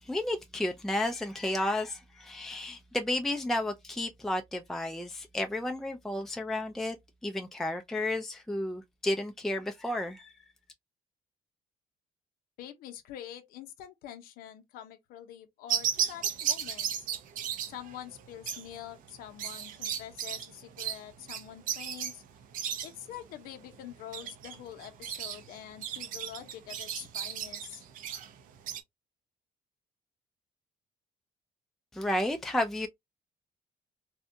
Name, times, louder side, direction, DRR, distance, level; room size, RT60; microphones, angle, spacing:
voice 1, 0.0-7.0 7.2-10.3 31.9-32.9, left 1 dB, ahead, 0.3 m, -32 dB
voice 2, 12.6-17.1 17.7-22.2 22.8-27.8, left 11 dB, 80° left, 0.6 m, -46 dB
sound 1, 15.7-28.8, right 9 dB, 65° right, 0.5 m, -35 dB
2.7 x 2.2 x 2.5 m
cardioid pair, 85°, 15 cm